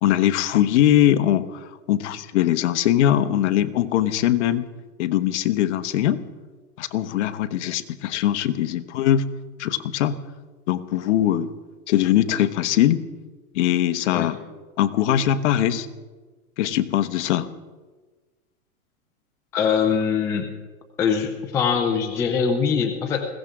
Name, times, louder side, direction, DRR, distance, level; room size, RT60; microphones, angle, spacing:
voice 1, 0.0-4.7 5.0-6.2 6.8-9.2 9.6-10.2 10.7-11.5 11.9-13.0 13.5-14.4 14.8-15.9 16.6-17.5, left 12 dB, 50° left, 11 dB, 1.1 m, -21 dB
voice 2, 19.5-20.5 21.0-23.3, left 6 dB, 5° left, 4 dB, 0.4 m, -22 dB
20.5 x 16.5 x 3.7 m, 1.3 s
hypercardioid pair, 145°, 44 cm